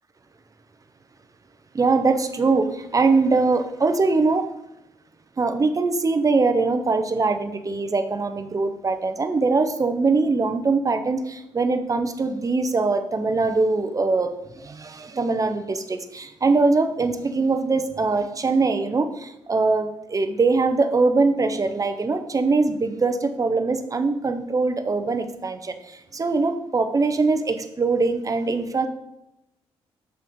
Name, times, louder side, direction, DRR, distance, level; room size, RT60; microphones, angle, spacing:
voice 1, 1.7-4.5 5.4-28.9, right 3 dB, 30° right, 0.7 m, -22 dB
6.7 x 6.6 x 3.7 m
cardioid pair, 80°, 11 cm